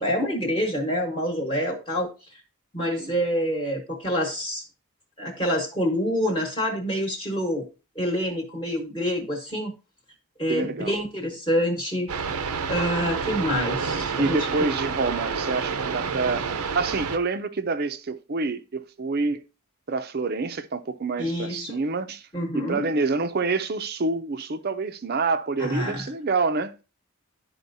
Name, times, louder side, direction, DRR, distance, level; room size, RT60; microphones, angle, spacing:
voice 1, 0.0-2.4 2.7-4.6 5.2-7.7 7.9-9.7 10.4-12.1 12.7-14.5 21.2-21.8 22.3-22.8 25.6-26.0, equal, 20° left, 1.2 m, -27 dB
voice 2, 2.8-3.1 10.5-11.0 14.2-16.4 16.7-19.4 19.9-22.3 22.5-26.8, right 3 dB, 45° right, 0.5 m, -27 dB
sound 1, 12.1-17.2, right 5 dB, 85° right, 0.7 m, -29 dB
11.5 x 4.3 x 2.7 m
head